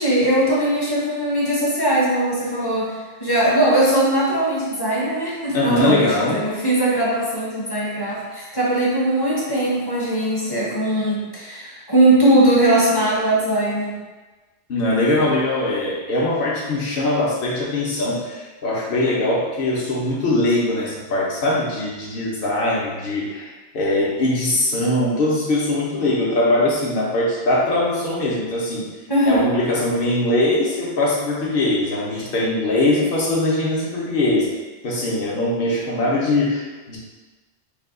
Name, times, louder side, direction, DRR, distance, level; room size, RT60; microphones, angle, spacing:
voice 1, 0.0-14.0 29.1-29.5, right 1 dB, 25° left, -6 dB, 0.7 m, -20 dB
voice 2, 5.5-6.5 14.7-28.9 29.2-34.5 34.8-37.0, left 2 dB, 55° left, -4 dB, 0.9 m, -21 dB
3.4 x 2.2 x 3.6 m, 1.3 s
omnidirectional pair, 1.2 m